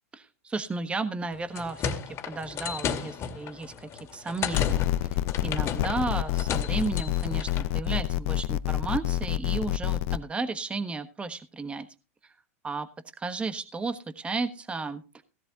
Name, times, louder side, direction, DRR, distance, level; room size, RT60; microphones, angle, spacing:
voice 1, 0.1-4.8 5.4-11.9 12.6-12.9 13.2-15.2, right 3 dB, 15° right, 10 dB, 1.3 m, -33 dB
sound 1, 1.3-7.7, left 7 dB, 35° left, 2.4 m, -34 dB
sound 2, 4.5-10.2, left 14 dB, 60° left, 0.7 m, -28 dB
16.5 x 12.0 x 2.9 m, 0.29 s
hypercardioid pair, 115°, 8 cm